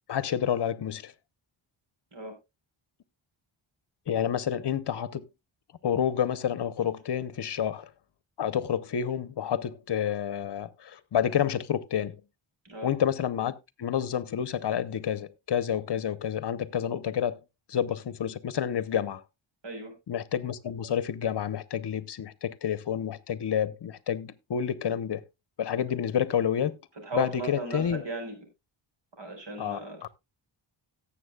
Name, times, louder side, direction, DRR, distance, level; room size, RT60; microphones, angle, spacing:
voice 1, 0.1-1.1 4.1-5.3 5.8-7.9 8.4-12.2 12.8-17.4 17.7-19.2 20.1-25.2 25.6-26.8 27.1-28.0 29.6-30.1, left 9 dB, 55° left, 0.8 m, -29 dB
voice 2, 19.6-19.9 27.0-28.4 29.2-30.1, right 2 dB, 60° right, 4.8 m, -36 dB
17.5 x 7.5 x 2.3 m
wide cardioid pair, 95°, 49 cm